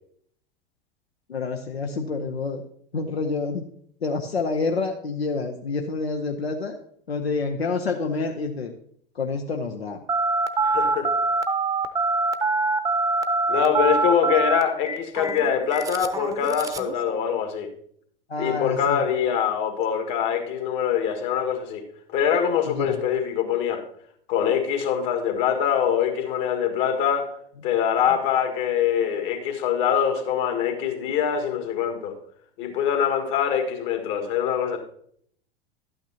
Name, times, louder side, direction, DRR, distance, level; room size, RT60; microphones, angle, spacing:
voice 1, 1.3-2.6 2.9-3.6 4.0-6.8 7.1-8.7 9.2-10.0 18.3-19.0 22.6-23.0, left 4 dB, 85° left, 3 dB, 0.8 m, -28 dB
Telephone, 10.1-16.9, right 3 dB, 10° right, 0.7 m, -24 dB
voice 2, 10.6-11.1 13.5-17.7 18.4-21.8 22.1-23.8 24.3-27.3 27.6-32.1 32.6-34.8, left 8 dB, 55° left, 5 dB, 1.7 m, -24 dB
12.0 x 9.0 x 2.8 m, 0.65 s
figure-of-eight pair, 85°, 30 cm